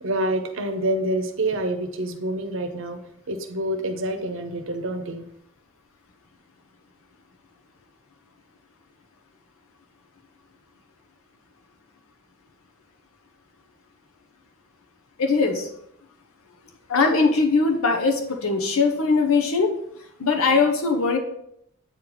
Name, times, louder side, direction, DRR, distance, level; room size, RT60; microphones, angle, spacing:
voice 1, 0.0-5.2, right 1 dB, 65° right, 7 dB, 0.7 m, -27 dB
voice 2, 15.2-15.7 16.9-19.7 20.2-21.2, left 4 dB, 80° left, 3 dB, 0.7 m, -20 dB
8.3 x 3.0 x 3.9 m, 0.74 s
head